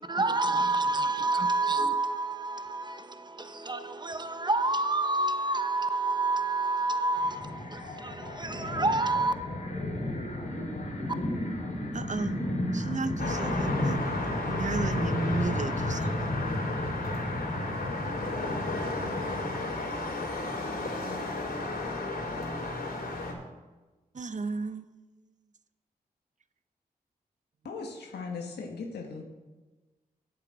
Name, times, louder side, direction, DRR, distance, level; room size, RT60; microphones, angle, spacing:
voice 1, 0.1-9.3, right 2 dB, 25° right, 1.1 m, -28 dB
sound 1, 7.1-19.6, left 1 dB, 50° left, 3.2 m, -33 dB
voice 2, 11.9-12.4 12.7-16.1 24.1-24.9, right 4 dB, 50° right, 0.8 m, -34 dB
sound 2, 13.2-23.3, left 2 dB, 70° left, 4.0 m, -34 dB
voice 3, 27.6-29.2, left 4 dB, 85° left, 1.4 m, -38 dB
8.7 x 6.8 x 8.7 m
cardioid pair, 45°, 17 cm